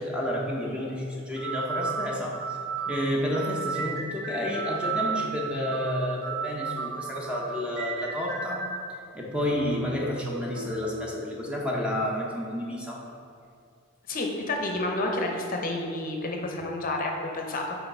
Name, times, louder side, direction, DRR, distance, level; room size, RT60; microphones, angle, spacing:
voice 1, 0.0-2.6 2.9-8.7 9.1-13.1, left 1 dB, 5° right, -3 dB, 0.6 m, -30 dB
sound 1, 0.7-0.8 1.4-8.9 9.4-11.1, right 5 dB, 85° right, 0.9 m, -34 dB
voice 2, 14.1-17.8, left 2 dB, 40° left, 1 dB, 0.6 m, -30 dB
5.7 x 4.7 x 4.2 m, 2.3 s
head